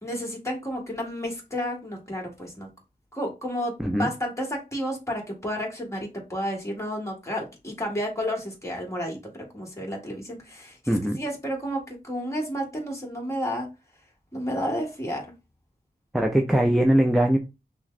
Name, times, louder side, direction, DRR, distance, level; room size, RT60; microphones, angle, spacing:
voice 1, 0.0-2.7 3.1-13.7 14.3-15.2, equal, 20° left, 1.5 m, -31 dB
voice 2, 3.8-4.1 10.9-11.2 16.1-17.4, right 1 dB, ahead, 0.5 m, -21 dB
5.8 x 2.1 x 2.5 m
wide cardioid pair, 100°, 16 cm